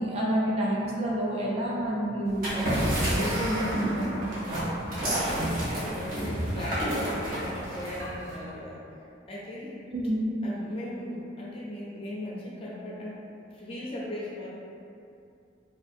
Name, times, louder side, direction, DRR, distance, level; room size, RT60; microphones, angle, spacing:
voice 1, 0.0-4.2 9.9-10.3, right 1 dB, 35° right, -4 dB, 0.3 m, -29 dB
sound 1, 2.3-8.3, right 1 dB, 50° right, 0.8 m, -32 dB
sound 2, 2.7-8.5, right 1 dB, 85° right, 0.7 m, -34 dB
voice 2, 5.0-9.8 10.4-13.2 13.5-14.5, left 1 dB, 30° left, -6 dB, 0.4 m, -38 dB
2.5 x 2.4 x 2.6 m, 2.5 s
head